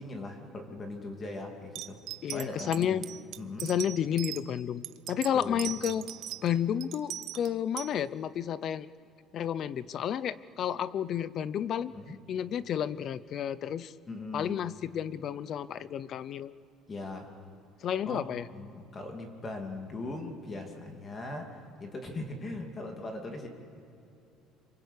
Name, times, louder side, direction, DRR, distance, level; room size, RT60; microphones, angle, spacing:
voice 1, 0.0-2.0 2.3-3.1 3.4-3.7 5.3-5.8 11.9-12.2 14.1-14.6 16.9-17.3 18.0-23.5, left 2 dB, 20° left, 3 dB, 2.7 m, -40 dB
sound 1, 1.7-4.4 4.8-6.5 6.8-7.9, right 14 dB, 50° right, 0.8 m, -39 dB
voice 2, 2.2-3.1 3.6-6.0 6.4-8.9 9.3-11.9 12.3-13.9 14.3-16.5 17.8-18.4, left 9 dB, 35° left, 17 dB, 0.6 m, -31 dB
27.0 x 24.5 x 8.3 m, 2.7 s
cardioid pair, 170°, 0 cm